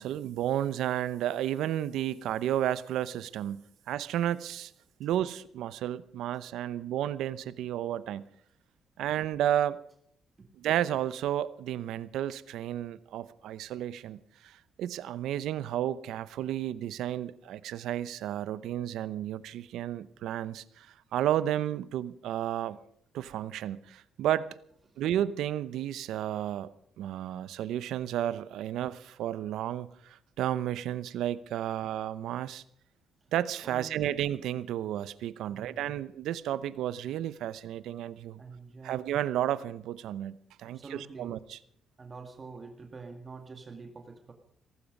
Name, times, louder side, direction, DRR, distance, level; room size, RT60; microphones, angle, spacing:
voice 1, 0.0-3.6 3.9-4.7 5.0-8.2 9.0-9.8 10.6-22.8 23.1-24.5 25.0-26.7 27.0-32.6 33.3-38.4 38.8-41.6, right 11 dB, 85° right, 16 dB, 0.7 m, -32 dB
voice 2, 33.6-34.2 35.5-36.0 38.4-39.0 40.7-41.3 42.0-44.3, right 4 dB, 35° right, 5 dB, 2.0 m, -46 dB
18.0 x 15.0 x 5.3 m, 0.67 s
cardioid pair, 90°, 0 cm